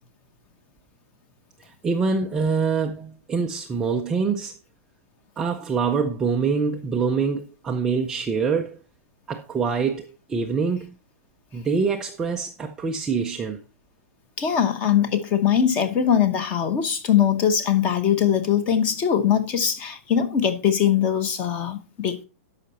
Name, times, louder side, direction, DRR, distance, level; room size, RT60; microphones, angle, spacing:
voice 1, 1.6-4.6 5.4-8.8 9.3-10.9 11.5-13.6, right 5 dB, 5° right, 0.4 m, -25 dB
voice 2, 14.4-22.2, left 8 dB, 20° left, 0.9 m, -21 dB
12.5 x 5.7 x 4.1 m
hypercardioid pair, 175°, 8 cm